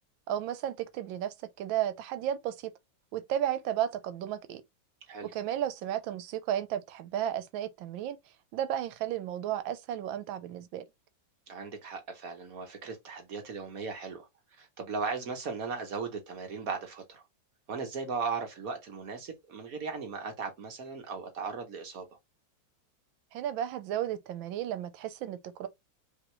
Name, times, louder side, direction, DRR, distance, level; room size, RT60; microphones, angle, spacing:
voice 1, 0.3-2.7 3.1-4.6 5.2-8.2 8.5-10.8 23.3-25.7, right 11 dB, 85° right, 1.4 m, -33 dB
voice 2, 11.5-17.2 17.7-22.2, right 5 dB, 55° right, 1.3 m, -37 dB
5.2 x 3.0 x 3.1 m
omnidirectional pair, 2.1 m